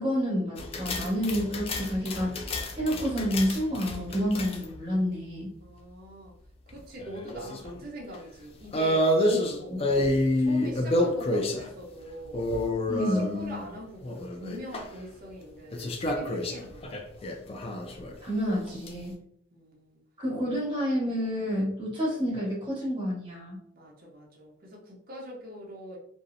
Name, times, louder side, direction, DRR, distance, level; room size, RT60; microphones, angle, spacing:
voice 1, 0.0-2.4 2.7-5.5 9.2-9.4 9.7-9.8 12.9-13.3 18.2-19.1 20.2-23.6, equal, 25° right, -6 dB, 1.2 m, -29 dB
sound 1, 0.6-4.8 6.7-7.8 8.1-8.2 8.7-11.7 12.3-13.7 14.0-14.9 15.7-18.1 18.7-18.9, left 1 dB, 30° left, 0.3 m, -29 dB
voice 2, 5.6-6.3 6.7-9.1 9.5-12.5 12.9-17.0 19.5-20.0 23.7-26.0, equal, 45° right, -1 dB, 0.6 m, -43 dB
2.6 x 2.0 x 2.4 m, 0.69 s
head